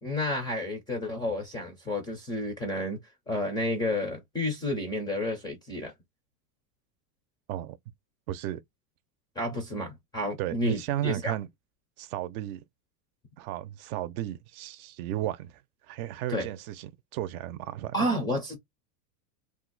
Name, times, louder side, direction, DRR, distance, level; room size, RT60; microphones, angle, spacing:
voice 1, 0.0-3.0 3.3-5.9 9.4-11.3 16.3-16.5 17.9-18.6, left 1 dB, 10° left, 0.3 m, -31 dB
voice 2, 8.3-8.6 10.4-11.5 12.0-12.6 13.4-15.5 15.9-17.9, right 13 dB, 65° right, 0.6 m, -34 dB
2.6 x 2.1 x 3.8 m
supercardioid pair, 145°, 46 cm